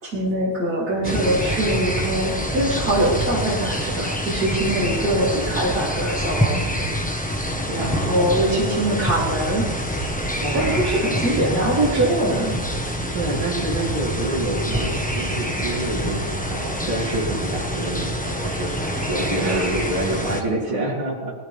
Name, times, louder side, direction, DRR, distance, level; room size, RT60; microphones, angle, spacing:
voice 1, 0.0-7.2 7.8-9.7 10.5-12.6 19.4-19.7, right 1 dB, 45° right, -9 dB, 4.0 m, -23 dB
sound 1, 1.0-20.4, equal, 5° left, 1.0 m, -26 dB
voice 2, 7.7-8.2 10.4-10.9 13.1-21.3, right 1 dB, 65° right, -7 dB, 3.9 m, -27 dB
21.5 x 16.0 x 3.6 m, 1.4 s
omnidirectional pair, 2.3 m